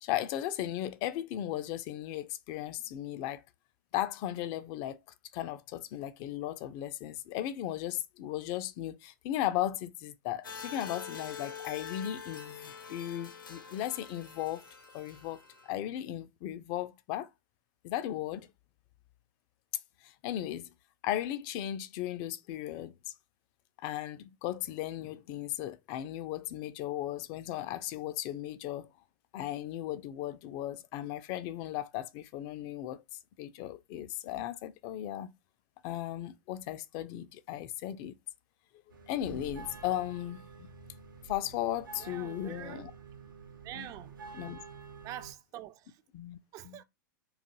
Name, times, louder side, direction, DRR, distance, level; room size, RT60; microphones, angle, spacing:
voice 1, 0.0-3.4 3.9-5.0 5.3-14.6 14.9-15.4 15.7-17.3 17.8-18.5 20.0-20.7 21.0-22.9 23.8-28.9 29.3-33.0 33.4-35.3 35.8-38.1 39.1-40.4 41.2-42.9 43.8-43.9 44.3-44.6 46.1-46.4 46.6-46.8, left 12 dB, 45° left, 0.4 m, -36 dB
sound 1, 10.4-15.7, left 6 dB, 85° left, 0.7 m, -45 dB
sound 2, 38.9-45.3, right 5 dB, 80° right, 0.8 m, -48 dB
voice 2, 42.0-42.8 43.6-44.1 45.0-46.0 46.5-46.8, right 12 dB, 35° right, 0.3 m, -45 dB
2.5 x 2.3 x 2.7 m
hypercardioid pair, 100°, 11 cm